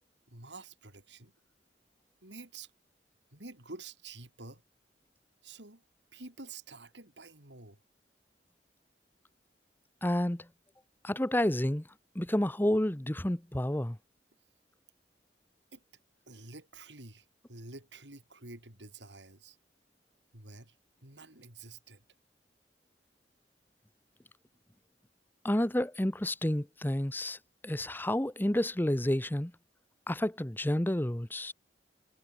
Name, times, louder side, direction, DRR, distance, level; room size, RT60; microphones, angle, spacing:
voice 1, 0.3-1.3 2.2-2.7 3.3-4.6 5.4-5.8 6.1-7.8 15.7-15.8 16.3-19.6 20.3-20.8 21.0-22.0, right 3 dB, 90° right, 6.8 m, -49 dB
voice 2, 10.0-10.5 11.0-11.8 12.1-14.0 25.4-27.4 27.6-29.5 30.1-31.5, left 1 dB, 10° left, 0.9 m, -30 dB
head